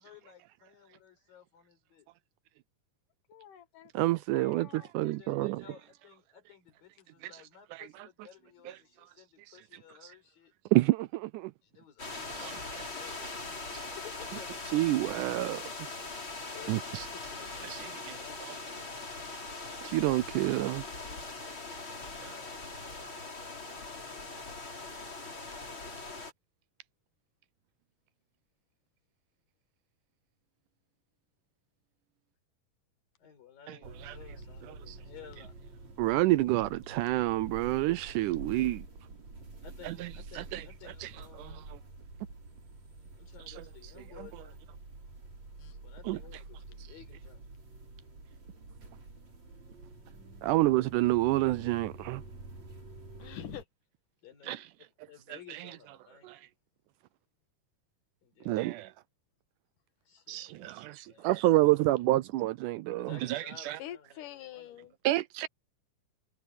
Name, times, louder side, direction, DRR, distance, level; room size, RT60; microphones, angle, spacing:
voice 1, 0.0-2.1 4.8-10.5 11.6-13.2 13.5-14.5 16.4-18.9 21.9-22.6 33.2-35.6 39.6-41.7 43.2-44.6 45.7-47.4 54.2-56.3 58.2-58.7 60.1-61.5 63.0-64.9, left 9 dB, 90° left, 6.4 m, -55 dB
voice 2, 3.3-4.9 45.6-45.8 53.2-53.6 63.8-65.0, left 12 dB, 70° left, 2.9 m, -46 dB
voice 3, 3.9-5.6 7.2-7.4 7.7-8.1 8.7-8.8 10.7-11.5 12.4-12.9 13.7-13.9 14.3-14.4 14.7-15.6 16.7-17.1 17.6-18.6 19.8-20.8 22.2-22.4 33.7-34.2 34.6-35.0 36.0-38.8 39.8-41.6 43.5-44.3 46.0-46.4 50.4-52.2 54.4-54.7 55.3-56.0 56.2-56.4 58.5-58.9 60.3-63.8 65.0-65.5, right 17 dB, 80° right, 1.9 m, -29 dB
sound 1, 12.0-26.3, left 3 dB, 35° left, 5.6 m, -41 dB
sound 2, 33.8-53.6, right 3 dB, 50° right, 7.3 m, -48 dB
omnidirectional pair, 3.9 m